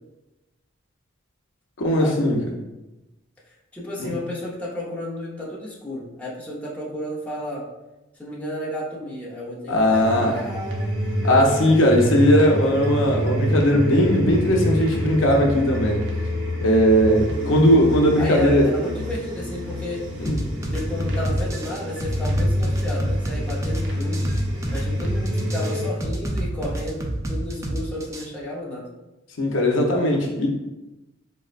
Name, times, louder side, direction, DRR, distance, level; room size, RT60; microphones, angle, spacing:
voice 1, 1.8-2.4 4.0-4.1 9.7-10.4 11.2-16.0 16.6-18.7 20.2-20.4 29.4-30.5, equal, 80° left, 0 dB, 0.6 m, -18 dB
voice 2, 3.5-7.7 8.2-11.0 17.4-17.8 18.2-20.0 20.7-24.3 24.7-28.9, equal, 10° left, -7 dB, 0.7 m, -32 dB
sound 1, 9.9-25.9, equal, 60° right, 0.7 m, -27 dB
sound 2, 20.3-28.3, right 1 dB, 15° right, 0.3 m, -28 dB
4.1 x 2.1 x 2.4 m, 1.0 s
head